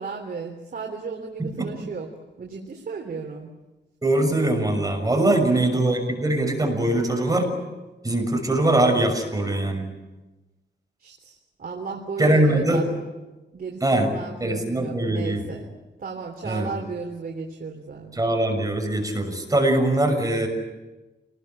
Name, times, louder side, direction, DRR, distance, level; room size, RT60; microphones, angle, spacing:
voice 1, 0.0-2.1 2.4-3.5 5.1-5.8 11.0-12.9 13.5-15.7 16.0-18.2, right 5 dB, 55° right, 1 dB, 3.4 m, -35 dB
voice 2, 1.4-1.7 4.0-7.5 8.0-9.9 12.2-12.8 13.8-14.1 14.4-15.4 16.4-16.7 18.1-20.5, right 1 dB, 20° right, 3 dB, 6.4 m, -22 dB
28.5 x 20.5 x 8.9 m, 1.1 s
wide cardioid pair, 120°, 18 cm